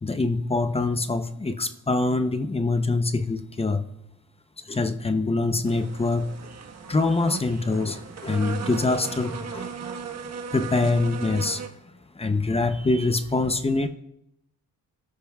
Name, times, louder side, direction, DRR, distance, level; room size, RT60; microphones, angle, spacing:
voice 1, 0.0-3.8 4.7-6.3 6.9-9.8 10.5-11.7 12.2-13.9, left 3 dB, 15° left, 0.6 m, -24 dB
sound 1, 5.6-11.7, right 6 dB, 45° right, 1.3 m, -37 dB
27.0 x 13.5 x 2.3 m
wide cardioid pair, 150°, 36 cm